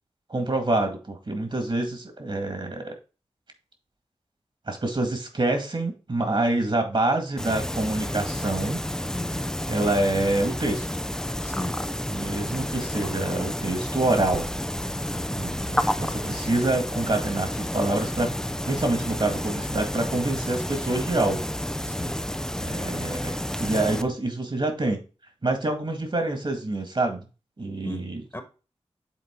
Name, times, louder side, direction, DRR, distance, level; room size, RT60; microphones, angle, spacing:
voice 1, 0.3-2.9 4.7-8.8 9.7-10.9 12.1-14.5 15.3-18.4 18.6-21.4 22.6-25.0 25.4-27.2 27.6-28.2, right 2 dB, 45° right, 2.0 m, -26 dB
sound 1, 7.4-24.0, left 1 dB, 5° left, 0.5 m, -30 dB
voice 2, 9.1-9.5 11.4-11.8 13.0-13.2 15.1-15.5 22.0-22.2 27.8-28.4, left 1 dB, 20° left, 1.5 m, -37 dB
8.1 x 3.8 x 3.8 m
cardioid pair, 45°, 11 cm